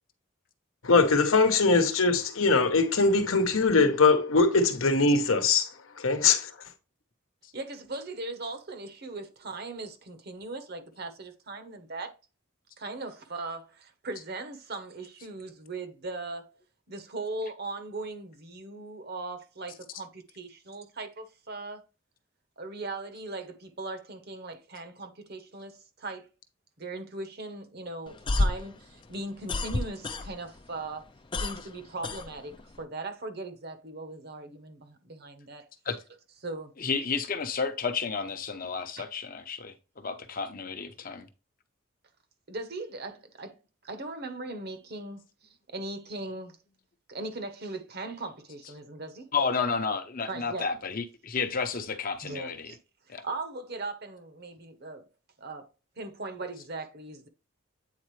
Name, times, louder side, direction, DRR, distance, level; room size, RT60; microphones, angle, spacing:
voice 1, 0.8-5.7 6.0-6.5, left 3 dB, 80° left, 0.9 m, -22 dB
voice 2, 7.5-12.1 12.8-16.6 16.9-21.8 22.6-26.3 26.8-31.1 31.4-35.6 36.4-36.7 39.0-39.1 42.5-43.6 43.8-46.6 47.1-49.3 50.3-50.7 52.2-52.8 53.2-55.1 55.4-55.7 56.0-57.3, right 2 dB, 50° right, 1.0 m, -39 dB
sound 1, 28.1-30.6 30.9-32.8, left 2 dB, 25° left, 0.4 m, -30 dB
voice 3, 36.8-41.3 49.3-52.7 53.1-53.2, left 5 dB, 45° left, 0.8 m, -31 dB
8.5 x 4.1 x 3.2 m
head